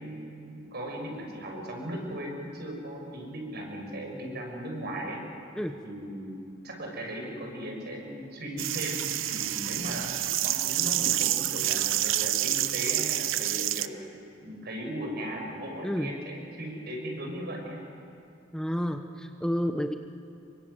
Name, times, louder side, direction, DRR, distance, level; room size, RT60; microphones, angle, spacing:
voice 1, 0.0-5.2 5.8-10.1 10.4-14.0 14.4-17.8, right 1 dB, 55° right, 1 dB, 6.6 m, -37 dB
sound 1, 8.6-13.9, right 13 dB, 80° right, 0.8 m, -28 dB
voice 2, 15.8-16.1 18.5-19.9, equal, 5° left, 5 dB, 0.9 m, -30 dB
27.5 x 23.5 x 8.1 m, 2.7 s
head